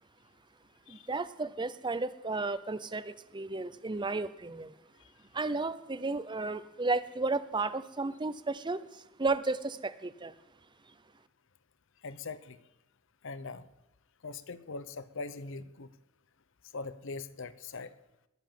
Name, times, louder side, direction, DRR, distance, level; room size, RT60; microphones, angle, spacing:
voice 1, 0.9-4.7 5.3-10.3, right 3 dB, 20° right, 14 dB, 0.6 m, -33 dB
voice 2, 12.0-12.6 13.2-13.6 14.2-15.9 16.7-17.9, left 3 dB, 60° left, 14 dB, 0.8 m, -41 dB
21.0 x 7.9 x 7.6 m, 0.91 s
head